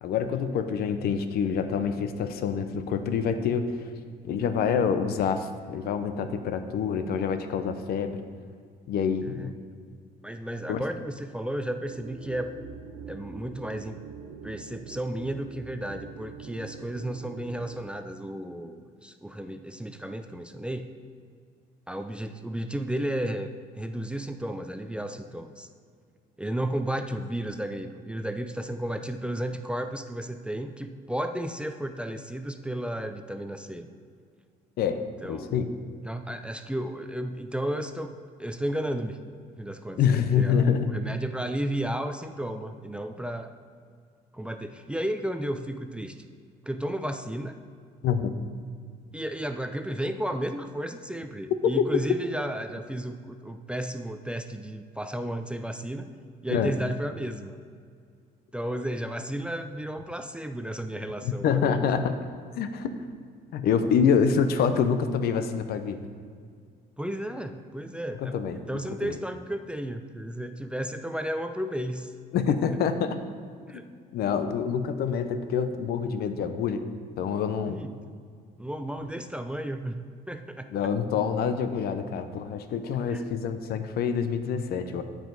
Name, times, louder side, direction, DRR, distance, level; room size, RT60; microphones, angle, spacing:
voice 1, 0.0-3.8 4.2-8.2 8.9-9.5 10.7-10.8 34.8-35.7 40.0-41.2 48.0-48.4 51.6-51.9 56.5-56.7 61.2-62.2 62.5-62.9 63.5-66.0 68.2-68.6 69.0-69.2 72.3-73.2 74.1-76.8 77.2-77.8 80.7-85.0, left 6 dB, 65° left, 9 dB, 0.7 m, -26 dB
voice 2, 10.2-12.6 13.1-14.0 14.4-20.9 21.9-23.5 23.7-25.7 26.4-33.9 35.2-35.6 36.0-38.1 38.4-39.2 39.6-40.0 40.3-43.5 44.3-46.2 46.7-47.6 49.1-56.1 56.4-57.6 58.5-61.8 67.0-72.1 73.7-73.9 77.7-78.0 78.6-80.7 83.1-83.2, right 1 dB, 5° right, 7 dB, 0.4 m, -33 dB
sound 1, 11.9-17.8, right 6 dB, 65° right, 0.8 m, -44 dB
14.0 x 4.9 x 3.9 m, 2.1 s
cardioid pair, 110°, 17 cm